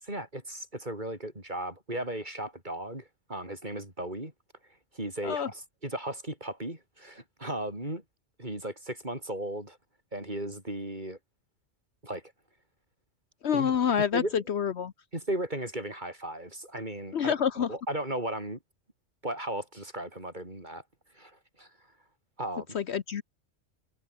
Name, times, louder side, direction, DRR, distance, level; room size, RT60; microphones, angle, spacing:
voice 1, 0.0-4.3 4.9-8.0 8.4-9.8 10.1-11.2 12.0-12.2 13.5-13.7 14.1-14.4 15.1-17.4 17.7-18.6 19.2-20.8 21.1-21.7 22.4-22.7, right 1 dB, 35° right, 6.9 m, -36 dB
voice 2, 13.4-14.9 17.1-17.7 22.7-23.2, left 8 dB, 60° left, 1.1 m, -27 dB
omnidirectional pair, 1.3 m